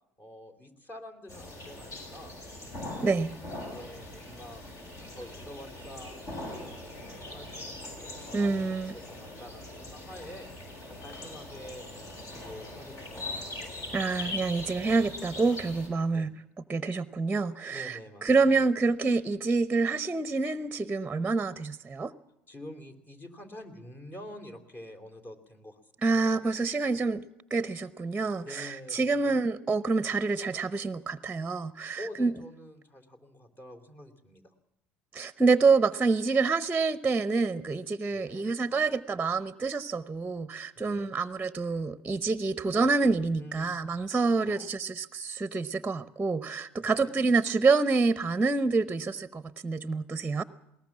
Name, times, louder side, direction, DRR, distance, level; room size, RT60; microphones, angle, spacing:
voice 1, 0.2-2.4 3.7-4.6 5.0-10.5 10.9-13.7 16.1-16.3 17.7-18.5 22.5-25.8 26.1-26.4 28.4-29.2 32.0-34.5 38.1-38.5 40.8-41.1 43.4-43.8 44.4-44.7 46.8-47.2, left 1 dB, 30° left, 6 dB, 3.5 m, -47 dB
sound 1, 1.3-15.9, left 2 dB, 55° left, 7.3 m, -41 dB
voice 2, 8.3-8.9 13.9-16.3 16.7-22.1 26.0-27.2 27.5-32.3 35.1-50.4, right 4 dB, 15° right, 16 dB, 0.9 m, -27 dB
21.0 x 19.0 x 7.3 m, 0.83 s
hypercardioid pair, 70°, 6 cm